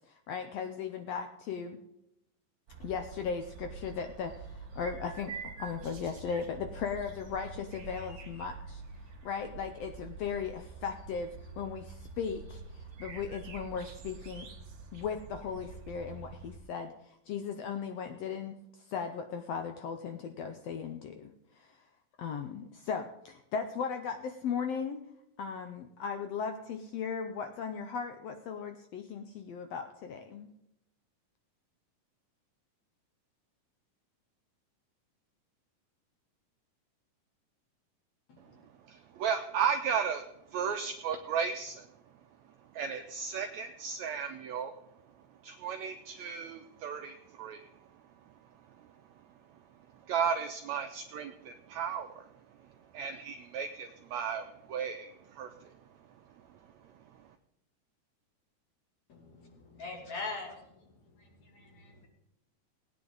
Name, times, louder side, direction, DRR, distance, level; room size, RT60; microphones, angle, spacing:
voice 1, 0.1-1.8 2.8-8.8 9.2-14.5 14.9-21.8 22.2-25.0 25.4-30.5, left 6 dB, 85° left, 7 dB, 1.4 m, -37 dB
sound 1, 2.7-16.6, right 5 dB, 45° right, 1.7 m, -46 dB
voice 2, 38.9-40.3 40.5-41.9 42.7-44.8 45.4-47.6 50.1-52.2 52.9-55.7, right 7 dB, 80° right, 6 dB, 1.6 m, -34 dB
voice 3, 59.1-60.6 61.2-62.1, left 3 dB, 55° left, 0 dB, 4.0 m, -42 dB
18.5 x 9.4 x 4.0 m, 0.83 s
omnidirectional pair, 3.9 m